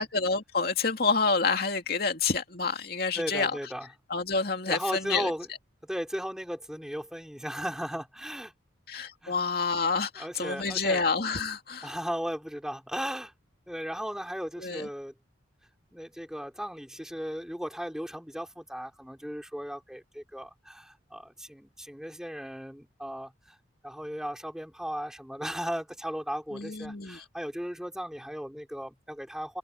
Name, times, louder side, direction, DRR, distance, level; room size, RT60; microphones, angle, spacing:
voice 1, 0.0-3.6 4.1-5.3 8.9-11.9 14.6-14.9 26.5-27.2, left 4 dB, 55° left, 2.6 m, -28 dB
voice 2, 3.1-3.9 4.7-5.5 5.8-8.5 9.2-9.3 10.2-11.0 11.8-13.3 13.7-15.1 15.9-23.6 23.8-29.6, equal, 5° right, 3.5 m, -36 dB
head